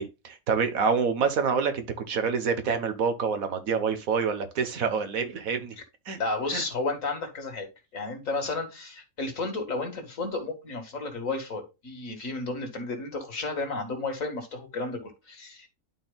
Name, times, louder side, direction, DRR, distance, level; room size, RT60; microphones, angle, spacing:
voice 1, 0.0-5.7 6.1-6.2 6.5-6.6, right 5 dB, 80° right, 1.5 m, -27 dB
voice 2, 6.2-7.7 7.9-15.7, left 3 dB, 70° left, 2.3 m, -32 dB
11.5 x 4.5 x 2.3 m
omnidirectional pair, 1.5 m